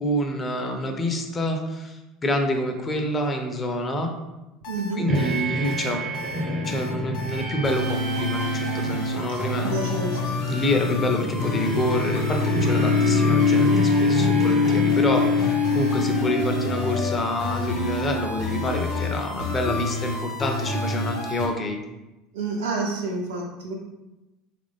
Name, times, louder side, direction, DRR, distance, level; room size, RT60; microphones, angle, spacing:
voice 1, 0.0-4.1 5.0-6.0 6.7-9.7 10.5-21.8, left 1 dB, 30° left, 4 dB, 0.6 m, -27 dB
sound 1, 4.6-21.5, left 1 dB, 70° left, 0.9 m, -29 dB
voice 2, 4.7-5.0 9.6-10.4 22.3-23.7, right 3 dB, 85° right, -2 dB, 0.8 m, -29 dB
sound 2, 5.1-17.1, left 3 dB, 45° right, 0.6 m, -24 dB
3.4 x 2.5 x 3.4 m, 1.0 s
hypercardioid pair, 80°, 0 cm